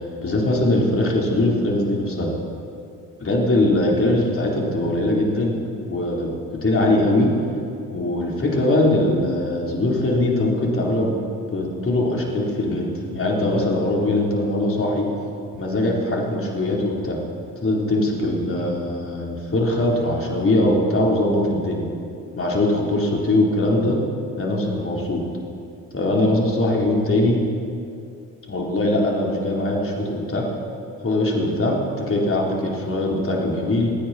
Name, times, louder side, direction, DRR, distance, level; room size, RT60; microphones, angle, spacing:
voice 1, 0.2-2.3 3.2-5.6 5.8-6.3 6.6-7.3 7.9-11.2 11.5-15.1 15.5-17.2 17.6-21.8 22.3-24.0 24.3-25.2 25.9-27.4 28.5-30.4 31.0-33.9, left 1 dB, 35° left, -2 dB, 4.0 m, -21 dB
27.5 x 9.8 x 4.4 m, 2.5 s
supercardioid pair, 65°, 39 cm